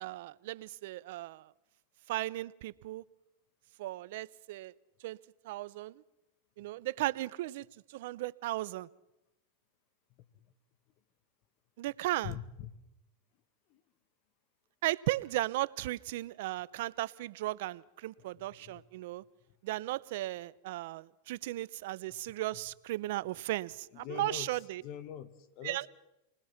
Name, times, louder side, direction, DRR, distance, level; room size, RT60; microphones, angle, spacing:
voice 1, 0.0-1.5 2.1-3.0 3.8-4.7 5.0-5.2 5.4-6.0 6.6-8.9 11.8-12.4 14.8-19.2 19.6-24.8 25.6-25.9, right 17 dB, 65° right, 18 dB, 0.8 m, -36 dB
voice 2, 12.2-12.8 13.7-13.8 18.2-18.8 22.5-22.6 23.9-24.5 24.8-25.9, left 10 dB, 50° left, 12 dB, 1.9 m, -44 dB
28.0 x 20.5 x 5.9 m, 0.92 s
hypercardioid pair, 115°, 0 cm